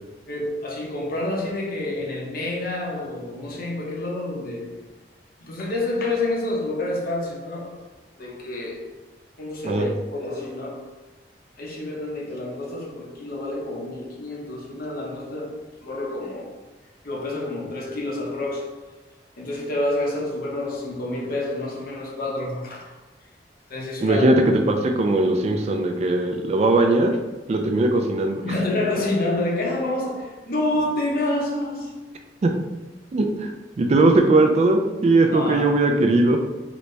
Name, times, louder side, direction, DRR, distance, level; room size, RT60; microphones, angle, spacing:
voice 1, 0.3-4.8 5.4-7.8 8.2-9.0 9.4-10.9 11.6-16.6 17.0-18.9 19.4-23.0 23.7-24.3 28.4-31.9 35.3-35.8, left 2 dB, 55° left, 0.8 m, -28 dB
voice 2, 24.0-27.1 27.5-28.4 32.4-32.5 33.1-33.5 33.8-36.4, right 2 dB, 35° right, 0.3 m, -19 dB
4.0 x 2.2 x 3.1 m
head